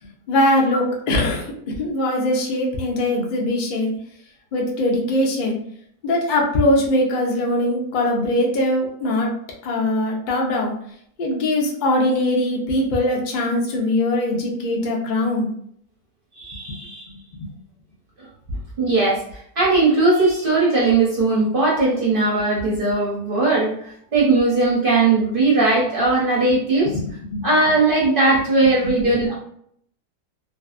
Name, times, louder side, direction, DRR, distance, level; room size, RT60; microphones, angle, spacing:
voice 1, 0.3-3.9 4.5-5.6 6.0-9.3 9.6-10.7 11.2-15.5 17.4-17.5 26.9-27.0 27.3-27.5 28.8-28.9, left 1 dB, 75° left, -1 dB, 0.4 m, -21 dB
voice 2, 16.3-17.0 18.8-27.0 27.4-29.3, right 3 dB, 55° right, -5 dB, 0.6 m, -19 dB
2.6 x 2.4 x 2.4 m, 0.66 s
omnidirectional pair, 1.7 m